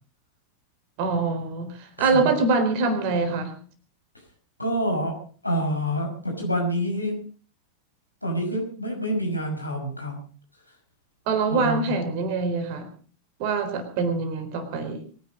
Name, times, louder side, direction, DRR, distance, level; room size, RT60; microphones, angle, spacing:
voice 1, 1.0-3.5 11.3-12.9 13.4-15.0, right 4 dB, 45° right, 7 dB, 4.1 m, -24 dB
voice 2, 2.0-2.3 4.6-5.1 5.4-7.2 8.2-10.1 11.5-11.9, equal, 85° left, 1 dB, 5.9 m, -27 dB
23.0 x 11.0 x 5.2 m, 0.41 s
figure-of-eight pair, 90°, 0 cm